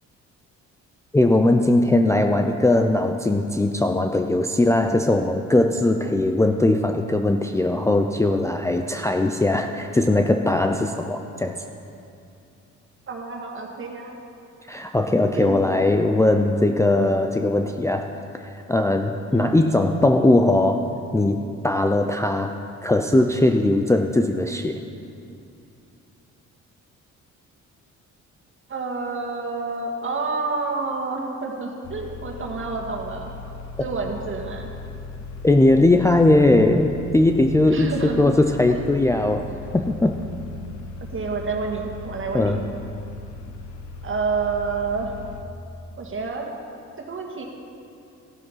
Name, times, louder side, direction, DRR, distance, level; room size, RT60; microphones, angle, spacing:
voice 1, 1.1-11.5 14.7-18.1 18.7-20.8 21.1-21.4 21.6-22.5 22.8-24.8 35.4-39.5 39.7-40.2 42.3-42.6, left 2 dB, 10° left, 4 dB, 0.5 m, -19 dB
voice 2, 13.1-14.2 15.3-15.6 19.3-19.6 28.7-33.3 33.8-34.7 37.7-38.3 38.7-38.8 41.1-42.5 44.0-45.2 46.0-46.5 47.1-47.4, right 4 dB, 45° right, 1 dB, 2.0 m, -29 dB
sound 1, 31.8-45.4, left 3 dB, 70° left, 1.0 m, -38 dB
15.0 x 7.7 x 5.7 m, 2.6 s
cardioid pair, 90°, 30 cm